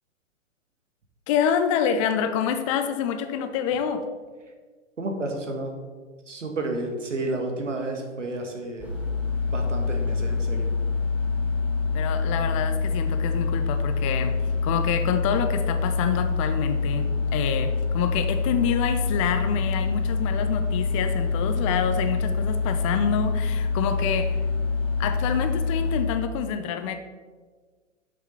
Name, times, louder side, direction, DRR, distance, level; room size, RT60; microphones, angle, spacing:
voice 1, 1.3-4.0 11.9-24.4 25.0-27.0, left 8 dB, 25° left, 9 dB, 0.7 m, -27 dB
voice 2, 5.0-5.8 6.3-8.9 9.5-10.7, right 2 dB, 70° right, 3 dB, 1.9 m, -31 dB
sound 1, 8.8-26.0, left 4 dB, 5° right, 2.1 m, -26 dB
7.8 x 6.7 x 5.6 m, 1.4 s
figure-of-eight pair, 110°, 39 cm